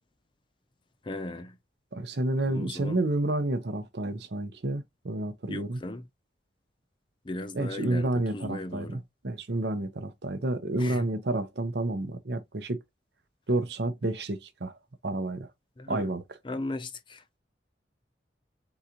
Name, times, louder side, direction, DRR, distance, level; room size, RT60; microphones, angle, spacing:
voice 1, 1.0-1.6 2.4-3.0 5.5-6.1 7.2-9.0 10.8-11.1 15.8-16.1 16.4-17.4, left 2 dB, 25° left, 0.5 m, -37 dB
voice 2, 1.9-5.8 7.5-12.8 13.5-14.7 15.0-15.5 15.9-16.2, right 2 dB, 65° right, 0.8 m, -30 dB
4.0 x 3.7 x 2.9 m
head